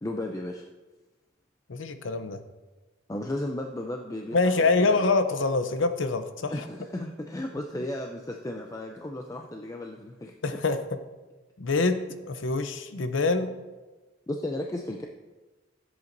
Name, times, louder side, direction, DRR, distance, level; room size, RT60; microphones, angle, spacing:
voice 1, 0.0-0.6 3.1-5.0 6.5-10.3 14.3-15.1, left 1 dB, 15° left, 2 dB, 0.4 m, -34 dB
voice 2, 1.7-2.4 4.3-6.7 10.4-10.8 11.6-13.5, left 3 dB, 75° left, 9 dB, 0.7 m, -25 dB
13.5 x 7.9 x 2.6 m, 1.2 s
head